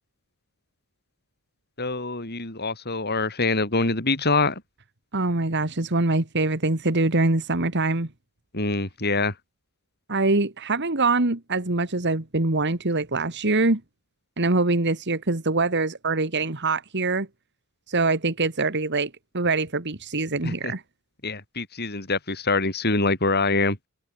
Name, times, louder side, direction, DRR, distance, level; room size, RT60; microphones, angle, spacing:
voice 1, 1.8-4.5 8.5-9.3 20.4-20.7 21.2-23.8, left 3 dB, 50° left, 5.9 m, -25 dB
voice 2, 5.1-8.1 10.1-13.8 14.4-17.3 17.9-20.8, right 3 dB, 55° right, 2.2 m, -24 dB
head